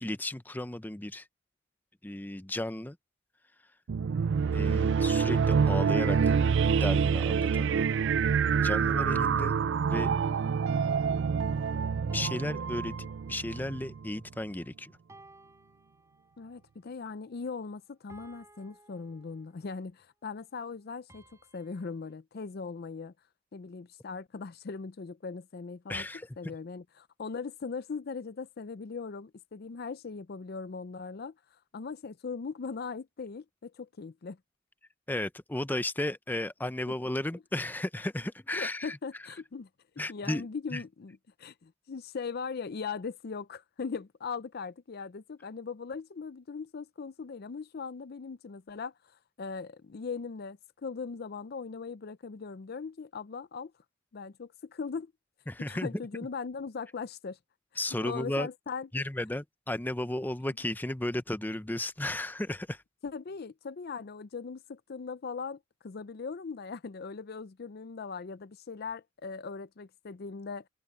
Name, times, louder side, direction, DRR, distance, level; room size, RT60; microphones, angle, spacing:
voice 1, 0.0-1.3 2.0-3.0 4.5-6.4 6.7-7.9 8.6-9.5 9.9-10.1 12.0-15.0 25.9-26.3 35.1-39.0 40.0-40.5 40.7-40.8 55.5-56.0 57.8-58.5 58.9-62.8, left 1 dB, 10° left, 0.6 m, -34 dB
sound 1, 3.9-14.1, right 6 dB, 65° right, 0.4 m, -27 dB
sound 2, 9.1-10.6 12.1-13.8 15.1-16.6 18.1-19.8 21.1-22.1, right 2 dB, 15° right, 5.7 m, -57 dB
voice 2, 16.4-21.2 21.5-23.1 23.5-26.1 26.4-34.4 36.9-37.0 38.5-39.7 40.1-53.7 54.1-55.1 55.7-57.4 58.0-58.9 63.0-70.7, left 5 dB, 50° left, 0.5 m, -39 dB
head